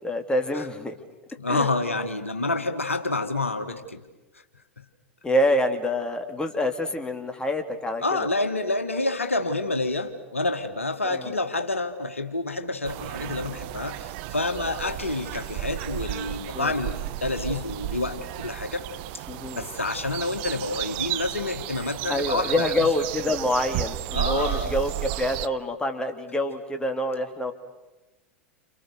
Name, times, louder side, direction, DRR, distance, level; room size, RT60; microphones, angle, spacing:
voice 1, 0.0-0.9 1.5-1.7 5.2-8.0 11.1-11.3 16.5-16.7 19.3-19.6 22.1-27.5, left 1 dB, 10° left, 5 dB, 3.1 m, -26 dB
voice 2, 1.4-4.0 8.0-18.9 19.1-19.2 19.5-22.9 24.1-24.8, left 2 dB, 90° left, 7 dB, 1.8 m, -28 dB
sound 1, 12.8-25.5, right 16 dB, 55° right, 0.9 m, -33 dB
30.0 x 28.0 x 6.7 m, 1.1 s
figure-of-eight pair, 90°, 7 cm